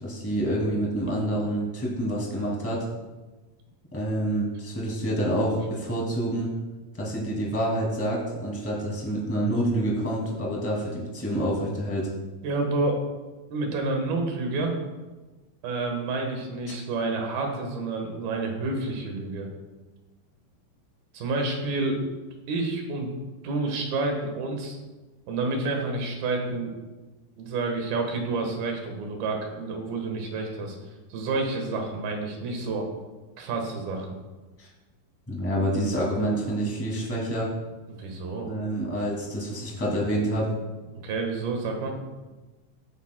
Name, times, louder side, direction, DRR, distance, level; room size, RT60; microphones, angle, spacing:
voice 1, 0.0-2.8 3.9-6.5 6.9-12.1 34.6-34.7 35.3-37.5 38.4-40.5, right 1 dB, 10° left, -3 dB, 0.8 m, -27 dB
voice 2, 12.4-13.0 13.5-14.8 15.6-19.5 21.1-22.0 22.5-23.1 23.4-24.8 25.3-26.7 27.4-30.8 31.1-32.9 33.4-34.2 37.9-38.5 40.9-41.9, right 3 dB, 70° right, 2 dB, 3.1 m, -29 dB
16.5 x 8.1 x 2.2 m, 1.2 s
omnidirectional pair, 4.6 m